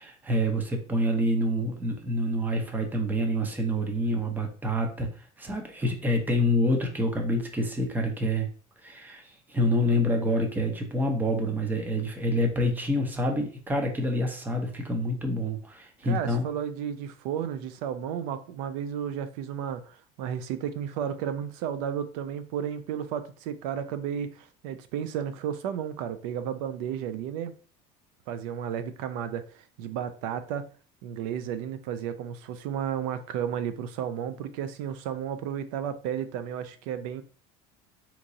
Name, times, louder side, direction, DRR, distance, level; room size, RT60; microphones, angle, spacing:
voice 1, 0.0-5.1 5.4-8.5 8.8-9.2 9.5-16.4, equal, 10° right, 0.6 m, -27 dB
voice 2, 16.0-27.5 28.3-30.7 31.0-37.2, right 9 dB, 80° right, 0.4 m, -33 dB
3.8 x 2.9 x 2.6 m
cardioid pair, 140°, 18 cm